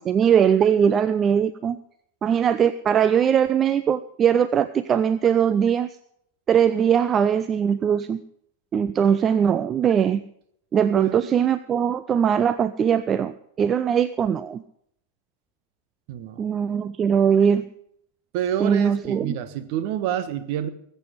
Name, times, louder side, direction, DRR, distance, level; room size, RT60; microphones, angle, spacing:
voice 1, 0.0-1.8 2.2-5.9 6.5-8.2 8.7-10.2 10.7-14.6 16.4-17.7 18.6-19.3, right 8 dB, 25° right, 14 dB, 0.4 m, -21 dB
voice 2, 10.9-11.3 16.1-16.5 18.3-20.7, right 10 dB, 45° right, 11 dB, 1.2 m, -28 dB
20.0 x 8.3 x 5.1 m, 0.70 s
figure-of-eight pair, 90°, 0 cm